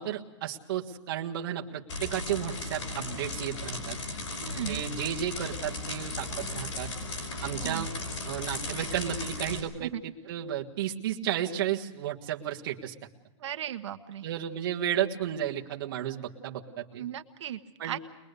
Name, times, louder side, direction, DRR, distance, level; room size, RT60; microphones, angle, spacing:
voice 1, 0.0-4.0 4.7-6.9 7.4-7.9 8.3-9.9 10.2-12.9 14.2-17.0 17.8-18.0, right 10 dB, 45° right, 0 dB, 1.6 m, -33 dB
sound 1, 1.9-9.6, left 2 dB, 90° left, 5.2 m, -36 dB
voice 2, 4.4-4.8 7.6-7.8 9.8-10.0 13.4-14.3 17.0-18.0, right 11 dB, 70° right, 8 dB, 1.3 m, -36 dB
22.0 x 21.5 x 6.8 m, 0.94 s
supercardioid pair, 175°, 16 cm